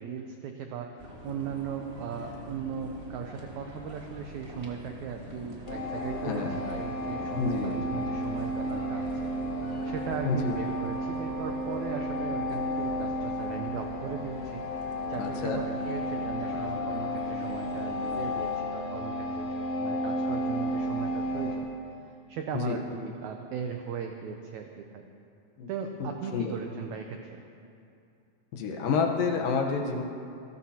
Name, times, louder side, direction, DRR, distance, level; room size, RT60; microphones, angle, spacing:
voice 1, 0.0-9.3 9.8-14.6 15.1-19.5 19.7-21.7 22.3-25.0 25.7-27.4, right 6 dB, 85° right, 4 dB, 1.6 m, -38 dB
sound 1, 1.0-18.6, left 1 dB, 45° right, 0.7 m, -45 dB
sound 2, 5.7-21.5, equal, 45° left, 2.3 m, -32 dB
voice 2, 6.2-6.6 7.4-7.8 10.3-10.6 15.2-15.6 22.5-22.8 25.6-25.7 26.0-26.5 28.5-30.0, left 5 dB, 75° left, 2 dB, 2.7 m, -29 dB
26.5 x 12.5 x 2.9 m, 2.6 s
omnidirectional pair, 4.2 m